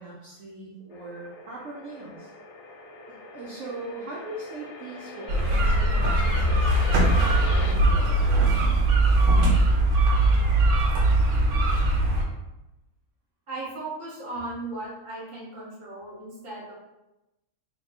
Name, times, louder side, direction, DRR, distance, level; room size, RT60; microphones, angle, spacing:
voice 1, 0.0-2.3 3.3-8.3, right 2 dB, 65° right, -4 dB, 0.9 m, -40 dB
sound 1, 0.9-7.7, left 3 dB, 65° left, 0.8 m, -41 dB
sound 2, 5.3-12.2, right 2 dB, 90° right, 1.2 m, -20 dB
voice 2, 13.5-16.7, right 2 dB, 35° right, -5 dB, 1.2 m, -36 dB
3.2 x 2.2 x 4.2 m, 0.95 s
omnidirectional pair, 1.5 m